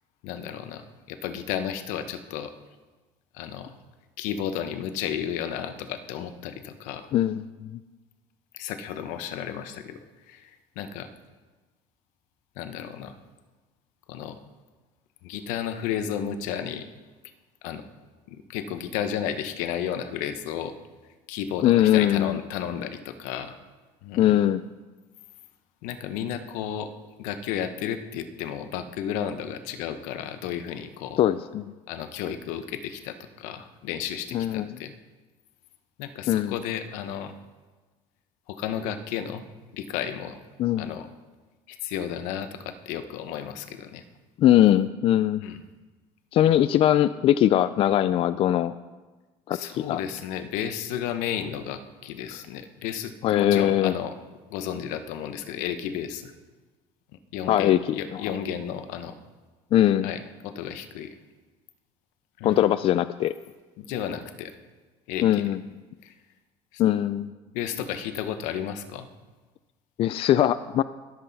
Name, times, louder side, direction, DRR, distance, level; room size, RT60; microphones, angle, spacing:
voice 1, 0.2-2.5 3.3-3.7 4.2-7.1 8.5-10.0 10.3-11.1 12.6-13.2 14.1-14.4 15.2-16.9 17.6-17.8 18.3-20.8 21.3-23.6 24.0-24.4 25.8-26.9 27.2-31.2 31.9-34.9 36.0-37.3 38.5-39.4 39.7-40.4 40.8-41.1 41.7-44.0 45.4-45.6 46.5-46.6 49.5-54.2 54.5-56.3 57.3-59.2 60.0-61.1 62.4-62.6 63.8-64.5 65.1-65.5 66.0-66.1 66.7-66.8 67.5-69.1, left 9 dB, 80° left, 9 dB, 1.1 m, -33 dB
voice 2, 7.1-7.8 21.6-22.4 24.2-24.6 31.2-31.7 34.3-34.7 36.3-36.5 40.6-40.9 44.4-45.4 46.3-48.7 49.5-50.0 53.2-53.9 57.5-57.8 58.1-58.2 59.7-60.1 62.4-63.3 65.2-65.6 66.8-67.3 70.0-70.8, left 12 dB, 45° left, 14 dB, 0.4 m, -21 dB
21.0 x 7.7 x 4.1 m, 1.3 s
cardioid pair, 120°, 13 cm